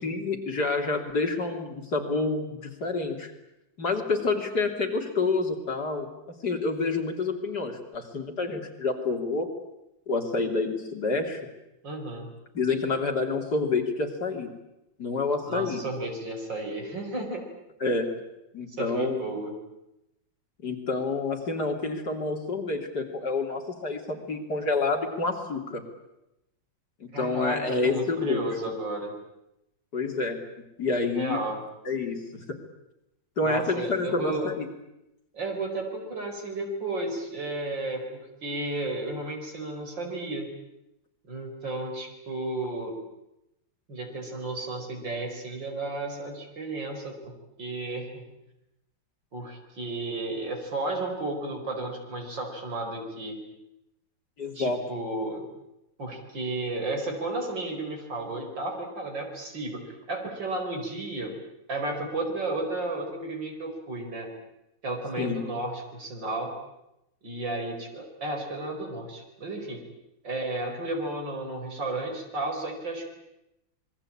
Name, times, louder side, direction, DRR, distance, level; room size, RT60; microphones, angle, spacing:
voice 1, 0.0-3.3 3.8-6.1 6.4-9.5 10.1-11.4 12.6-14.5 15.0-15.8 17.8-18.1 18.5-19.2 20.6-25.8 27.0-28.5 29.9-30.4 30.8-31.4 31.9-32.2 32.5-32.6 33.4-34.7 54.4-54.8 65.2-65.4, left 3 dB, 55° left, 3 dB, 3.6 m, -28 dB
voice 2, 11.8-12.3 15.5-17.4 18.7-19.5 27.1-29.1 31.1-31.6 33.4-34.6 35.3-40.5 41.3-43.0 43.9-48.3 49.3-53.4 54.5-55.5 56.0-61.4 61.7-64.3 64.8-66.5 67.2-69.8 70.2-73.1, right 2 dB, 65° right, 3 dB, 5.6 m, -33 dB
27.0 x 22.0 x 8.7 m, 0.88 s
omnidirectional pair, 2.1 m